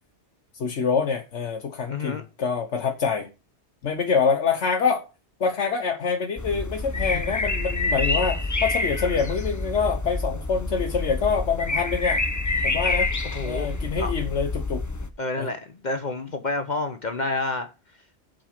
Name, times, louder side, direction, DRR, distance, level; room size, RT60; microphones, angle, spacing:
voice 1, 0.6-3.3 3.8-5.0 5.4-12.2 12.6-13.1 13.4-14.8 15.4-15.5, left 5 dB, 85° left, 1.3 m, -25 dB
voice 2, 1.9-2.2 7.1-7.3 13.2-13.7 14.0-14.1 15.2-17.7, left 2 dB, 45° left, 0.9 m, -29 dB
sound 1, 6.4-15.1, left 2 dB, 20° left, 0.6 m, -27 dB
7.8 x 5.1 x 7.3 m
omnidirectional pair, 1.1 m